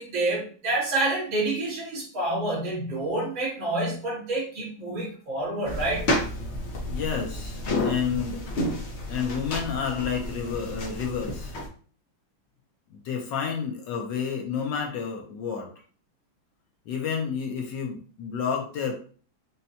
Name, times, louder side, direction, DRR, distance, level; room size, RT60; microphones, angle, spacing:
voice 1, 0.0-6.1, right 2 dB, 70° right, -5 dB, 2.3 m, -28 dB
sound 1, 5.7-11.7, left 1 dB, 50° left, 0.9 m, -31 dB
voice 2, 6.9-8.4 9.1-11.5 12.9-15.7 16.9-18.9, left 6 dB, 70° left, 2 dB, 1.2 m, -30 dB
5.5 x 2.2 x 2.7 m, 0.42 s
omnidirectional pair, 2.2 m